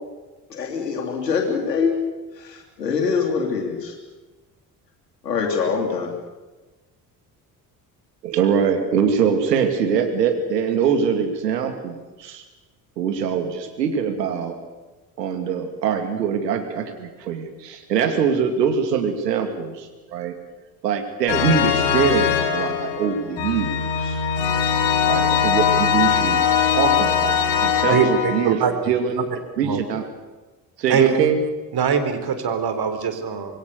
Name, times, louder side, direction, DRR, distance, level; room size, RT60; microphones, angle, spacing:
voice 1, 0.5-2.0 2.4-3.9 5.2-6.1, left 5 dB, 90° left, 1 dB, 3.4 m, -24 dB
voice 2, 8.2-12.4 13.0-14.6 15.2-20.4 20.8-23.7 24.0-24.2 25.1-28.6 28.9-29.3 29.6-30.1 30.8-31.4, right 7 dB, 85° right, 6 dB, 2.6 m, -23 dB
sound 1, 21.3-28.5, left 8 dB, 65° left, 4.5 m, -21 dB
voice 3, 27.9-29.2 29.6-29.8 30.9-31.3 31.7-33.6, right 6 dB, 50° right, 8 dB, 3.9 m, -22 dB
25.5 x 21.5 x 6.8 m, 1.2 s
hypercardioid pair, 50°, 48 cm